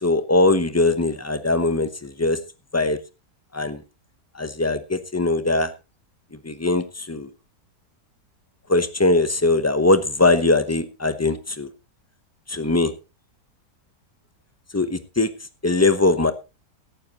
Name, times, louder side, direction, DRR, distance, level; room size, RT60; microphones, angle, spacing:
voice 1, 0.0-2.4 2.7-3.0 3.5-3.8 4.3-5.7 6.4-7.3 8.7-11.7 12.5-12.9 14.7-15.3 15.6-16.3, left 2 dB, 20° left, 11 dB, 0.4 m, -21 dB
17.0 x 12.0 x 2.9 m, 0.29 s
omnidirectional pair, 1.8 m